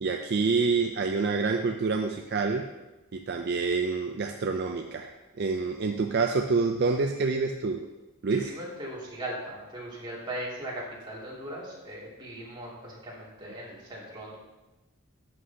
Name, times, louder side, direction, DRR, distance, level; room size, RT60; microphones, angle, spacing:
voice 1, 0.0-2.7 3.1-7.9 8.2-8.5, right 4 dB, 50° right, 4 dB, 0.4 m, -27 dB
voice 2, 8.3-14.4, right 1 dB, 25° right, -6 dB, 2.4 m, -39 dB
11.0 x 7.8 x 2.8 m, 1.1 s
head